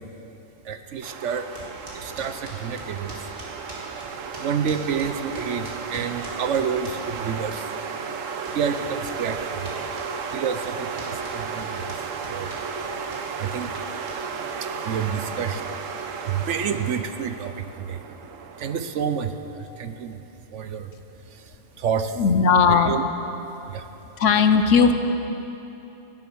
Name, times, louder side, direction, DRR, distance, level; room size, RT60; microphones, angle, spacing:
voice 1, 0.6-1.5 1.9-3.1 4.4-7.7 8.5-9.7 10.3-11.9 12.3-12.5 13.4-13.7 14.6-15.6 16.2-18.0 18.6-20.2 20.5-21.0 21.3-22.2 22.7-23.0 23.7-23.9, right 7 dB, 70° right, 9 dB, 1.1 m, -29 dB
sound 1, 1.0-18.8, right 5 dB, 90° right, 1.2 m, -34 dB
sound 2, 1.5-7.9 8.1-14.5, right 1 dB, 45° right, 3.3 m, -43 dB
voice 2, 22.2-23.0 24.2-24.9, left 5 dB, 75° left, 8 dB, 1.2 m, -17 dB
17.0 x 13.0 x 6.2 m, 3.0 s
omnidirectional pair, 1.3 m